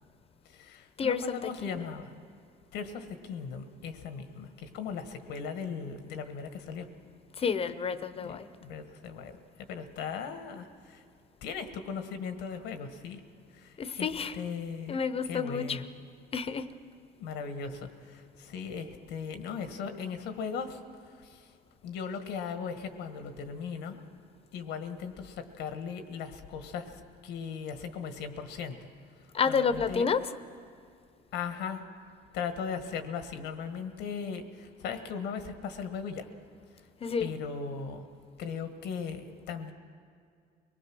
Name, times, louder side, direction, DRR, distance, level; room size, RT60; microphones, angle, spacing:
voice 1, 0.4-2.1 2.7-6.9 8.2-9.4 9.7-11.0 11.4-13.2 13.5-14.1 14.3-15.0 15.2-15.8 17.2-21.5 21.8-24.0 24.5-28.9 29.2-30.0 31.3-31.8 32.3-36.3 36.8-36.9 37.2-38.1 38.4-39.7, left 6 dB, 90° left, 8 dB, 1.5 m, -38 dB
voice 2, 1.0-1.9 7.4-8.5 13.8-14.3 14.9-15.8 16.3-16.7 29.3-30.2 37.0-37.3, left 6 dB, 35° left, 13 dB, 0.8 m, -30 dB
24.0 x 19.0 x 6.2 m, 2.2 s
cardioid pair, 110°, 17 cm